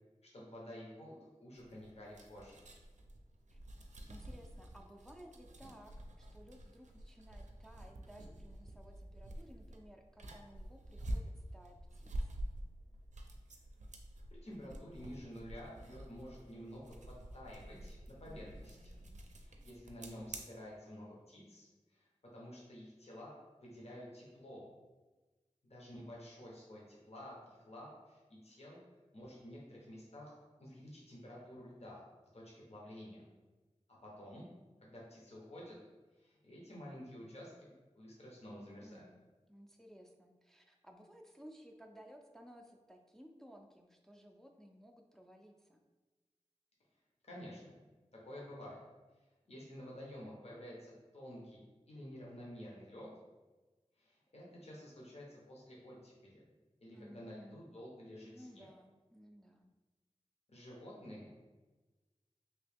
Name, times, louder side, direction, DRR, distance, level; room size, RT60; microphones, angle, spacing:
voice 1, 0.3-2.6 14.3-19.0 19.4-23.3 23.6-24.7 25.6-28.8 29.1-32.0 32.3-33.2 34.0-34.5 34.8-35.8 36.2-39.0 47.2-47.7 48.2-48.8 49.5-51.6 51.9-53.1 54.0-56.4 56.8-58.7 60.5-61.4, equal, 60° left, -4 dB, 0.8 m, -51 dB
sound 1, 1.6-20.4, right 1 dB, 85° right, 0.4 m, -48 dB
voice 2, 4.1-12.3 18.2-19.2 38.4-39.2 39.5-45.8 56.9-57.6 58.2-59.7, equal, 5° left, 2 dB, 0.4 m, -58 dB
3.0 x 2.8 x 3.4 m, 1.2 s
wide cardioid pair, 55°, 12 cm